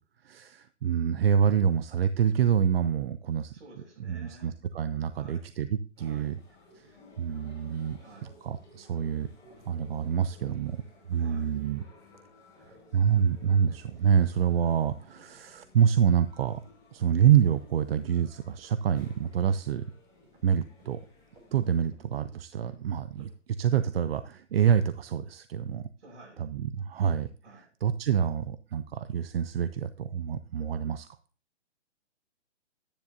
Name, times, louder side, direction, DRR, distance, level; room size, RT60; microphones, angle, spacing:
voice 1, 0.2-3.5 4.0-6.4 6.7-9.3 9.6-10.8 11.1-11.8 12.9-16.6 16.9-19.9 20.4-21.0 21.5-25.9 26.4-27.3 27.6-31.1, right 8 dB, 55° right, 0.6 m, -27 dB
voice 2, 3.5-4.5 5.1-5.5 6.0-6.3 8.0-8.3 11.1-11.5 26.0-26.4 27.4-27.7, right 2 dB, 70° right, 6.1 m, -51 dB
sound 1, 6.0-21.9, left 2 dB, 10° left, 5.6 m, -57 dB
sound 2, 8.4-13.4 13.7-19.9 20.2-23.9, right 2 dB, 15° right, 2.8 m, -64 dB
11.5 x 10.5 x 2.7 m
hypercardioid pair, 150°, 36 cm